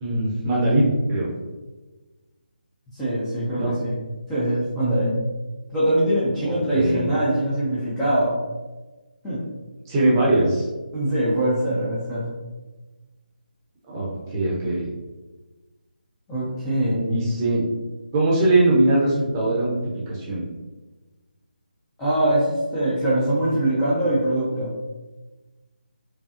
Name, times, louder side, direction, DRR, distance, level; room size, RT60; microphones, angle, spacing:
voice 1, 0.0-1.3 3.6-3.7 6.5-7.1 9.9-10.7 13.9-14.9 16.9-17.6 18.1-20.4, right 2 dB, 20° right, -5 dB, 1.0 m, -21 dB
voice 2, 2.9-3.9 4.3-5.2 5.7-8.3 9.2-9.4 10.9-12.3 16.3-17.1 22.0-24.7, right 1 dB, 10° left, -10 dB, 0.8 m, -23 dB
5.0 x 2.3 x 2.8 m, 1.2 s
figure-of-eight pair, 160°, 5 cm